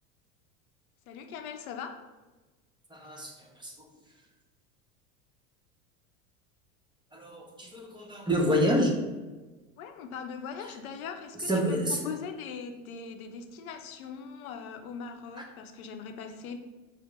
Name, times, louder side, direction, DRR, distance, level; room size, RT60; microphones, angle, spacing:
voice 1, 1.1-2.0 9.8-16.6, left 6 dB, 80° left, 6 dB, 0.6 m, -40 dB
voice 2, 2.9-3.3 3.6-3.7 7.1-9.0 11.5-12.0, equal, 10° right, -1 dB, 0.7 m, -27 dB
4.4 x 2.0 x 4.4 m, 1.2 s
hypercardioid pair, 90°, 42 cm